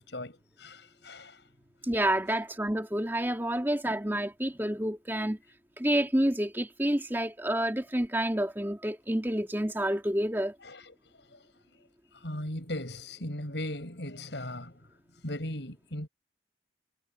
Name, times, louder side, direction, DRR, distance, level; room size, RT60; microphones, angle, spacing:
voice 1, 0.0-1.5 10.6-11.8 12.1-14.8 15.2-16.1, left 1 dB, 75° left, 7.0 m, -38 dB
voice 2, 1.8-5.4 5.8-10.5, right 1 dB, 10° right, 2.3 m, -29 dB
head